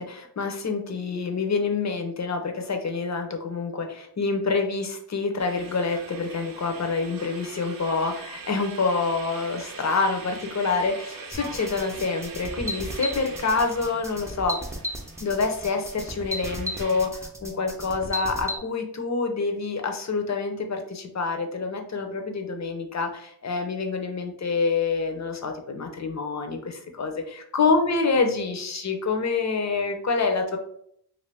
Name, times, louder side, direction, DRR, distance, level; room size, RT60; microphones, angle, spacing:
voice 1, 0.0-14.6 15.2-30.6, left 4 dB, 40° left, 5 dB, 0.6 m, -27 dB
sound 1, 5.4-17.1, right 4 dB, 55° right, 0.6 m, -43 dB
sound 2, 11.3-18.6, equal, 5° right, 0.6 m, -34 dB
2.6 x 2.6 x 3.3 m, 0.69 s
cardioid pair, 60°, 42 cm